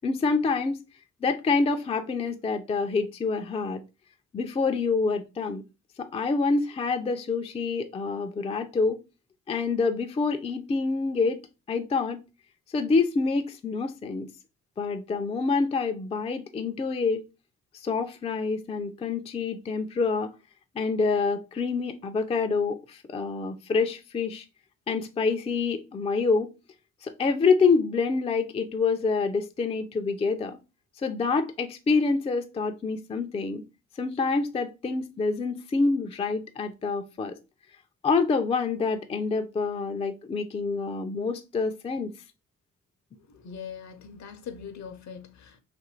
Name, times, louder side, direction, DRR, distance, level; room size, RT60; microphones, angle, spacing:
voice 1, 0.0-0.8 1.2-3.8 4.3-5.6 6.0-9.0 9.5-11.4 11.7-12.2 12.7-14.3 14.8-17.2 17.8-20.3 20.7-24.5 24.9-26.5 27.0-30.6 31.0-33.6 34.0-37.3 38.0-42.1, left 4 dB, 20° left, 0.3 m, -27 dB
voice 2, 43.2-45.6, left 7 dB, 60° left, 0.6 m, -42 dB
2.6 x 2.5 x 3.0 m
supercardioid pair, 60°, 33 cm